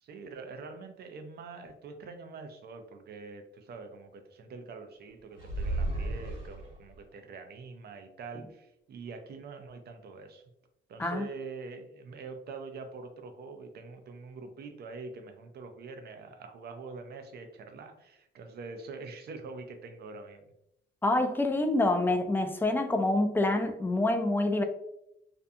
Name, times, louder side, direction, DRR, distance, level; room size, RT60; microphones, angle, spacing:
voice 1, 0.0-10.4 10.9-20.5, right 4 dB, 55° right, 6 dB, 0.5 m, -44 dB
sound 1, 5.4-7.0, right 2 dB, 80° right, 0.8 m, -33 dB
voice 2, 21.0-24.6, left 2 dB, 10° left, 6 dB, 0.3 m, -26 dB
2.6 x 2.2 x 2.6 m, 0.80 s
cardioid pair, 90°, 20 cm